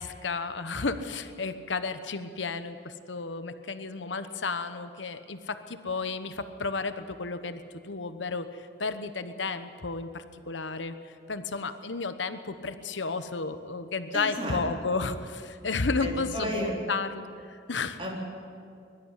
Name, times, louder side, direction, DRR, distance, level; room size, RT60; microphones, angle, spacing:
voice 1, 0.0-10.9 11.3-18.0, left 4 dB, 85° left, 10 dB, 1.1 m, -32 dB
voice 2, 14.1-14.6 16.0-16.8 18.0-18.2, equal, 30° right, -2 dB, 4.3 m, -32 dB
22.5 x 12.5 x 9.9 m, 2.4 s
head